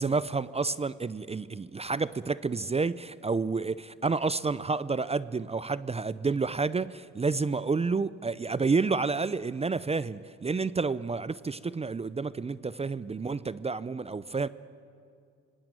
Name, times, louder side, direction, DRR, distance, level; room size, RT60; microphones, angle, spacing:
voice 1, 0.0-14.5, right 4 dB, 20° right, 17 dB, 0.5 m, -30 dB
25.0 x 19.0 x 8.9 m, 2.5 s
cardioid pair, 90°, 30 cm